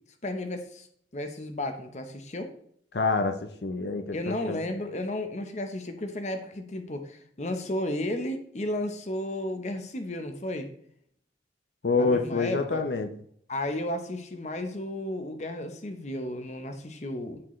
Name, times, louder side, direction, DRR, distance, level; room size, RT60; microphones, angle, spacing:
voice 1, 0.2-0.9 1.1-2.5 4.1-10.7 11.9-12.8 13.5-17.4, left 1 dB, 40° left, 6 dB, 0.9 m, -33 dB
voice 2, 2.9-4.6 11.8-13.1, left 3 dB, 70° left, 6 dB, 0.7 m, -27 dB
12.5 x 4.5 x 3.2 m, 0.66 s
head